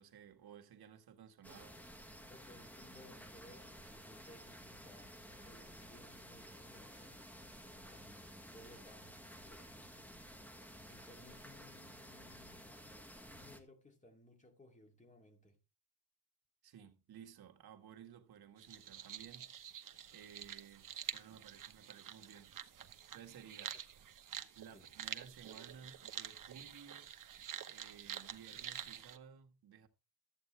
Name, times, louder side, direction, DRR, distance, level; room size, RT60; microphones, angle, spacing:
voice 1, 0.0-1.8 16.6-19.8 20.1-22.6 23.1-23.7 24.6-27.1 27.7-29.9, right 8 dB, 75° right, 1.8 m, -56 dB
sound 1, 1.4-13.6, equal, 5° left, 1.5 m, -54 dB
voice 2, 2.3-7.1 7.7-10.0 10.9-12.7 13.3-15.6 24.7-24.9, left 1 dB, 20° left, 2.4 m, -61 dB
sound 2, 18.6-29.2, right 9 dB, 55° right, 1.1 m, -48 dB
13.5 x 8.4 x 3.2 m
cardioid pair, 130°, 38 cm